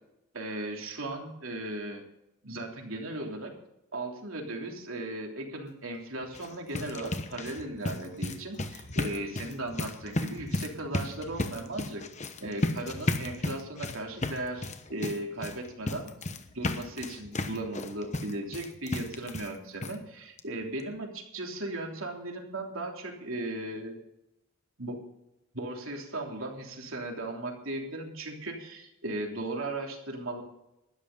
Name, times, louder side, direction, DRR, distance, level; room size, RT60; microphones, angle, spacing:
voice 1, 0.3-2.0 2.4-3.5 3.9-12.0 12.4-16.1 16.5-23.9 24.8-25.0 25.5-30.4, right 1 dB, 75° right, 1 dB, 3.3 m, -37 dB
sound 1, 6.2-19.6 19.8-19.9 20.4-20.5 20.8-20.9, left 2 dB, 35° left, 1.1 m, -34 dB
13.0 x 11.5 x 5.4 m, 0.87 s
head